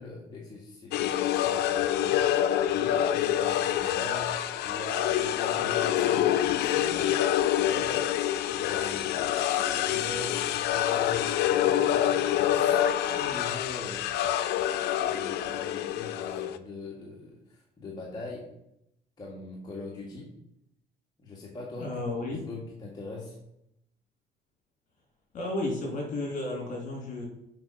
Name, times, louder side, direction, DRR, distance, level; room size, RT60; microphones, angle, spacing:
voice 1, 0.0-2.3 2.7-8.1 8.6-9.2 9.7-14.0 15.0-18.4 19.2-20.3 21.2-22.0 22.3-23.4, left 3 dB, 25° left, -4 dB, 1.9 m, -41 dB
sound 1, 0.9-16.6, left 11 dB, 80° left, 0.6 m, -26 dB
voice 2, 21.8-22.4 25.3-27.2, left 2 dB, 50° left, -1 dB, 3.4 m, -32 dB
7.6 x 5.2 x 5.9 m, 0.82 s
cardioid pair, 110°, 17 cm